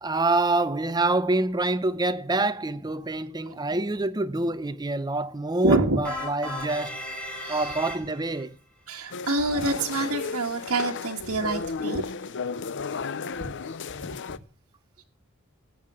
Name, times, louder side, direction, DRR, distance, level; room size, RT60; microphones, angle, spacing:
voice 1, 0.0-7.0 7.5-8.5, right 2 dB, 20° right, 0.7 m, -26 dB
voice 2, 5.6-6.0 7.4-7.7 8.9-12.0 13.4-13.5, right 2 dB, 70° right, 1.6 m, -26 dB
sound 1, 6.0-8.4, left 1 dB, 5° left, 4.6 m, -36 dB
sound 2, 9.1-14.4, left 5 dB, 55° left, 0.6 m, -34 dB
17.5 x 8.5 x 6.2 m
head